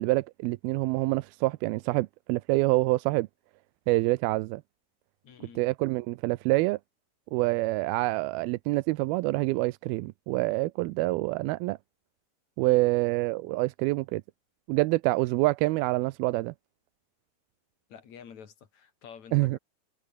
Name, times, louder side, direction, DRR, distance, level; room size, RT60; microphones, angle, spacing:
voice 1, 0.0-3.3 3.9-4.6 5.6-6.8 7.3-11.8 12.6-14.2 14.7-16.5 19.3-19.6, right 20 dB, 90° right, 2.5 m, -26 dB
voice 2, 5.2-5.7 12.6-13.0 17.9-19.6, left 7 dB, 50° left, 3.9 m, -49 dB
omnidirectional pair, 4.3 m